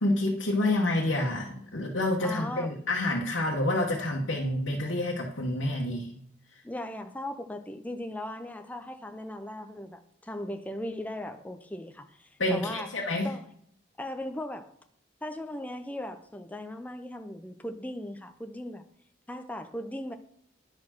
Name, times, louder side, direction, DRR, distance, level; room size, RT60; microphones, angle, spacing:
voice 1, 0.0-6.1 12.4-13.3, left 1 dB, 90° left, 1.3 m, -28 dB
voice 2, 0.6-0.9 2.2-2.7 6.6-13.5 14.0-14.7 15.2-18.8 19.3-20.1, left 1 dB, 10° left, 0.6 m, -38 dB
10.5 x 4.6 x 6.0 m
head